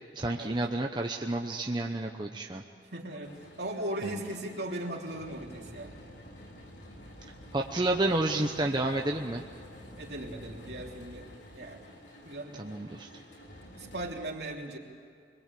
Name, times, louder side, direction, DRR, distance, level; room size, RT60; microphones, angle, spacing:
voice 1, 0.1-2.6 4.0-4.2 7.2-9.4 12.6-13.1, right 2 dB, 25° right, 2 dB, 0.9 m, -30 dB
voice 2, 2.9-6.0 10.0-11.3 11.5-11.8 12.2-12.6 13.8-14.8, right 1 dB, 65° right, 0 dB, 3.2 m, -38 dB
sound 1, 3.2-14.1, equal, 70° left, 4.2 m, -49 dB
26.0 x 21.5 x 8.5 m, 2.3 s
head